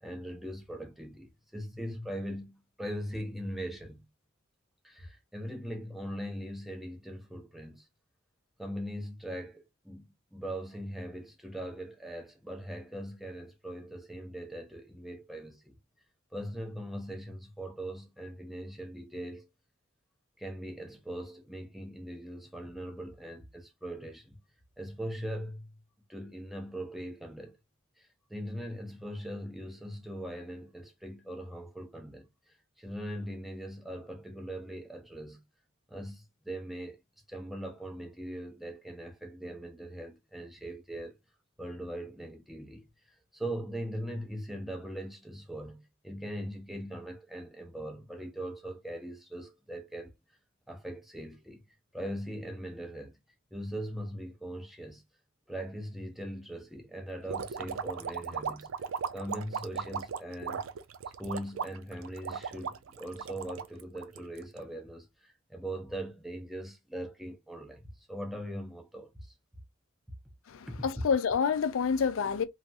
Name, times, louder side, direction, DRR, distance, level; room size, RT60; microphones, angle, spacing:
voice 1, 0.0-4.1 4.8-7.9 8.6-15.8 16.3-19.5 20.4-24.4 24.8-25.8 26.1-27.6 28.0-35.4 35.9-37.0 37.3-41.2 41.6-50.1 50.7-53.2 53.5-55.0 55.5-58.9 59.1-60.7 61.1-69.3 70.7-70.9, right 1 dB, ahead, 0.6 m, -40 dB
sound 1, 57.3-64.6, right 6 dB, 80° right, 0.4 m, -37 dB
voice 2, 70.5-72.5, left 6 dB, 75° left, 0.4 m, -28 dB
3.1 x 2.4 x 2.7 m
head